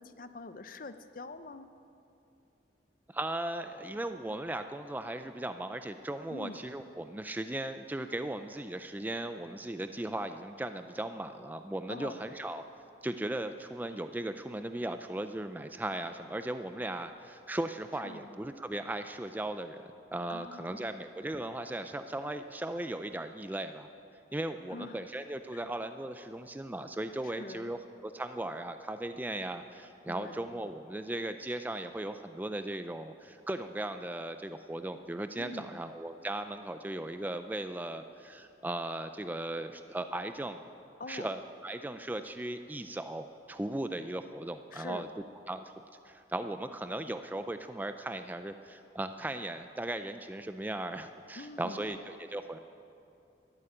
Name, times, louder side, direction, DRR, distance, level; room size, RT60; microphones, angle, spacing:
voice 1, 0.0-1.7 6.3-6.7 11.9-12.2 18.0-18.3 20.3-20.9 24.7-25.0 25.5-25.6 27.2-27.7 30.1-30.4 35.4-35.8 41.0-41.3 44.7-45.0 51.4-51.9, left 3 dB, 50° left, 11 dB, 0.6 m, -44 dB
voice 2, 3.1-12.6 13.0-23.9 24.3-40.6 41.1-45.1 45.5-45.6 46.0-52.6, right 1 dB, 10° right, 9 dB, 0.4 m, -37 dB
12.0 x 11.0 x 9.0 m, 2.7 s
head